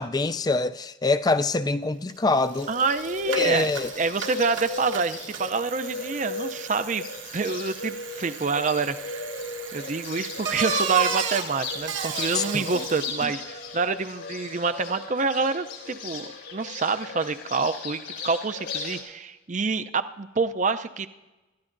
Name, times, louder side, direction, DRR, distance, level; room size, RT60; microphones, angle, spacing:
voice 1, 0.0-2.7 3.3-3.9 12.3-12.6 13.2-13.3, left 3 dB, 20° left, 0.4 m, -24 dB
Bicycle, 2.1-2.2 2.4-13.2, right 6 dB, 80° right, 1.4 m, -33 dB
Bird, 2.5-19.0, left 3 dB, 80° left, 3.3 m, -37 dB
voice 2, 2.7-3.7 4.0-7.0 7.3-9.3 9.7-21.1, right 4 dB, 40° right, 0.5 m, -27 dB
26.0 x 13.5 x 2.6 m
head